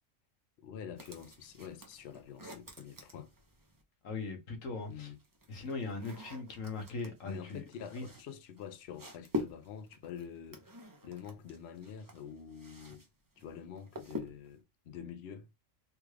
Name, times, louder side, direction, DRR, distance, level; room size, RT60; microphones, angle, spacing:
voice 1, 0.6-3.3 4.9-5.2 7.2-10.6 11.0-13.0 13.4-15.5, left 8 dB, 65° left, 0.8 m, -46 dB
sound 1, 1.0-3.8 4.8-13.1 13.3-14.6, left 1 dB, 30° right, 0.4 m, -45 dB
voice 2, 4.0-5.1 5.5-7.6 7.9-8.1, left 3 dB, 85° left, 1.4 m, -39 dB
3.5 x 2.4 x 3.1 m
omnidirectional pair, 1.3 m